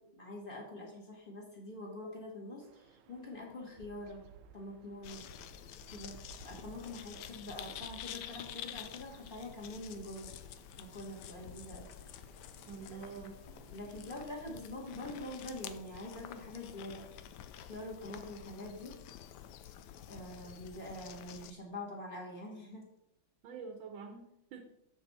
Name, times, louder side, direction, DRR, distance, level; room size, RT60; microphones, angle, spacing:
voice 1, 0.0-4.2 4.5-5.2 5.9-6.2 6.4-10.3 10.8-11.9 12.9-13.0 13.7-17.1 17.6-18.9 20.1-22.8, left 1 dB, 25° left, -2 dB, 1.7 m, -45 dB
sound 1, 2.6-14.4, right 8 dB, 90° right, 1.5 m, -60 dB
sound 2, 5.0-21.5, left 10 dB, 75° left, 0.9 m, -49 dB
voice 2, 12.7-13.4 23.4-24.6, right 5 dB, 70° right, 4 dB, 1.6 m, -46 dB
7.2 x 6.2 x 4.1 m, 0.84 s
omnidirectional pair, 2.3 m